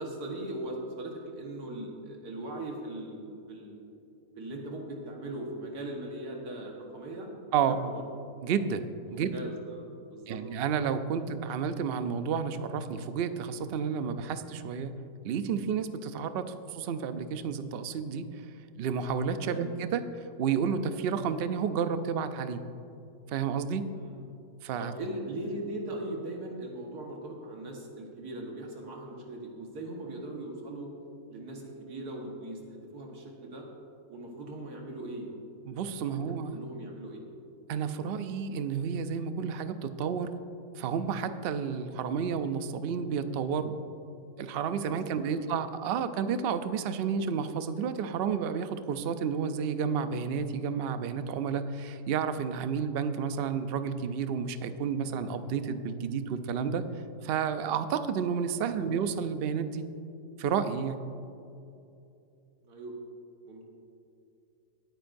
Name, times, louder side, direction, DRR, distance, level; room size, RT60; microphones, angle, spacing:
voice 1, 0.0-3.8 4.4-7.3 7.7-8.0 9.1-10.4 11.1-11.3 16.4-16.5 19.4-19.7 23.9-24.3 24.8-30.9 31.3-33.6 34.1-35.3 36.0-37.2 45.0-45.6 58.6-58.9 62.6-62.9 63.5-63.7, right 1 dB, 85° right, 0 dB, 1.9 m, -40 dB
voice 2, 8.4-8.8 9.1-9.4 10.3-14.9 15.2-18.4 18.8-20.0 20.4-22.6 23.3-23.8 24.6-24.9 35.7-36.5 37.7-40.3 40.8-43.7 44.4-56.8 57.2-59.9 60.4-61.0, right 7 dB, 70° right, 10 dB, 0.6 m, -31 dB
20.0 x 9.1 x 2.6 m, 2.7 s
omnidirectional pair, 1.6 m